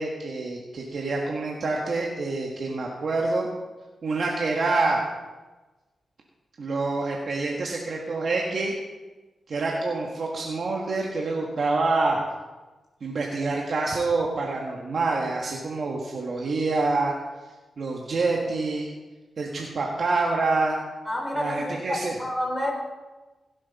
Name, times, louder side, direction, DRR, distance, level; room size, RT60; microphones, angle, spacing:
voice 1, 0.0-3.5 4.0-5.0 6.6-8.7 9.5-12.2 13.0-17.1 17.8-18.9 19.4-20.8 21.3-22.2, right 3 dB, 65° right, -1 dB, 1.5 m, -26 dB
voice 2, 21.1-22.7, left 1 dB, 15° left, 0 dB, 3.9 m, -29 dB
16.0 x 7.7 x 4.2 m, 1.2 s
cardioid pair, 60°, 0 cm